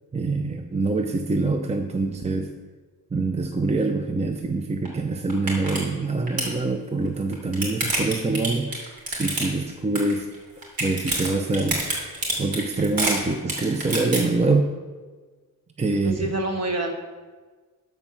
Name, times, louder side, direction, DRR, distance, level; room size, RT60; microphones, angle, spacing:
voice 1, 0.1-2.5 3.1-10.3 10.8-11.8 12.4-14.7 15.8-16.3, right 3 dB, 20° right, 5 dB, 0.5 m, -25 dB
sound 1, 4.9-5.0 5.3-5.8 6.1-6.5 7.2-9.7 10.0-10.4 10.6-14.2, right 2 dB, 80° right, 2.9 m, -27 dB
voice 2, 15.9-16.9, right 2 dB, 45° right, 2 dB, 1.6 m, -27 dB
13.0 x 4.5 x 6.2 m, 1.4 s
wide cardioid pair, 125°, 35 cm